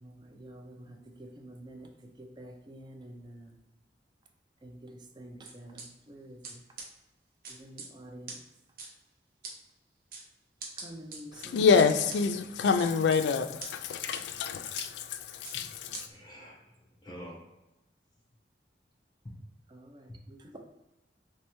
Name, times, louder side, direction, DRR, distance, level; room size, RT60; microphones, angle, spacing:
voice 1, 0.0-1.9 2.2-3.6 4.6-6.6 7.5-8.4 10.8-11.7 19.7-20.6, right 1 dB, 25° right, 0.4 m, -48 dB
sound 1, 5.4-5.8 6.4-6.5 6.8-6.9 7.4-7.9 8.3-8.4 8.8-8.9 9.4-9.5 10.1-10.2 10.6-11.2 11.8-12.2 12.8-13.2 13.6-13.7 14.1-14.2 14.8-14.9 15.4-15.6 15.9-16.0, right 4 dB, 50° right, 0.8 m, -41 dB
voice 2, 11.4-16.0, left 5 dB, 80° left, 0.3 m, -27 dB
voice 3, 16.0-17.4, equal, 25° left, 0.9 m, -48 dB
3.2 x 3.1 x 3.0 m
head